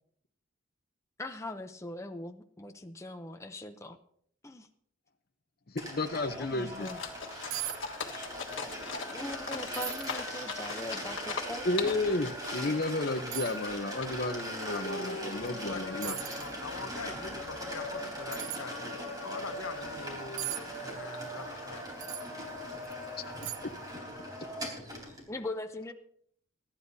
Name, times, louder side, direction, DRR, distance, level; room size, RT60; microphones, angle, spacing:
voice 1, 1.2-4.0 4.4-4.7 6.4-7.0 9.0-11.7 25.3-25.9, left 2 dB, 15° left, 6 dB, 0.6 m, -41 dB
voice 2, 5.8-6.9 11.6-16.1 23.3-23.4, left 2 dB, 45° left, 7 dB, 0.8 m, -32 dB
sound 1, 5.8-25.3, equal, 20° right, 3.8 m, -40 dB
sound 2, 6.8-23.9, left 5 dB, 70° left, 1.5 m, -44 dB
sound 3, 7.5-7.8 8.1-8.6 9.0-9.1 9.7-10.2 10.8-10.9 12.4-12.5 13.3-13.6 15.5-15.6 16.0-16.5 18.3-18.6 20.4-20.6 22.0-22.3 22.8-22.9 23.4-23.8 24.1-24.2, right 14 dB, 85° right, 0.6 m, -38 dB
voice 3, 14.7-20.5 20.8-21.8, left 3 dB, 90° left, 7 dB, 1.2 m, -42 dB
23.5 x 11.5 x 2.8 m, 0.64 s
head